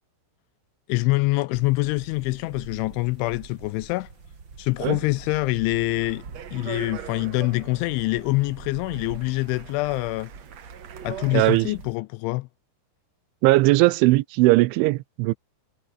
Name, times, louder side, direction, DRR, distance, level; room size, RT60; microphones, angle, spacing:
voice 1, 0.9-4.1 4.6-6.2 6.5-10.3 11.0-12.5, left 22 dB, 85° left, 2.8 m, -25 dB
sound 1, 1.5-12.0, right 5 dB, 30° right, 2.8 m, -44 dB
Speech, 6.0-11.8, right 9 dB, 60° right, 1.8 m, -42 dB
voice 2, 11.3-11.7 13.4-15.3, right 20 dB, 80° right, 3.0 m, -19 dB
omnidirectional pair, 5.8 m